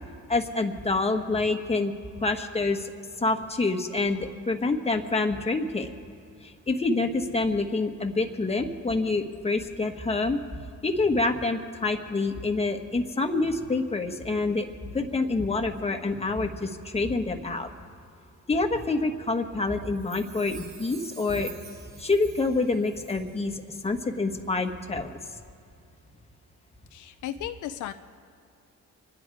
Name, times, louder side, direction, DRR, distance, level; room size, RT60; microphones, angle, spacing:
voice 1, 0.3-1.9 2.2-2.9 3.2-5.9 6.4-10.4 10.8-14.7 14.9-17.7 18.5-21.5 22.0-25.1, left 3 dB, 20° left, 5 dB, 1.3 m, -27 dB
Chime, 19.9-23.5 23.8-23.9, right 5 dB, 65° right, 1.9 m, -48 dB
voice 2, 26.9-27.9, left 12 dB, 75° left, 9 dB, 0.6 m, -35 dB
25.5 x 10.5 x 4.8 m, 2.4 s
cardioid pair, 90°, 30 cm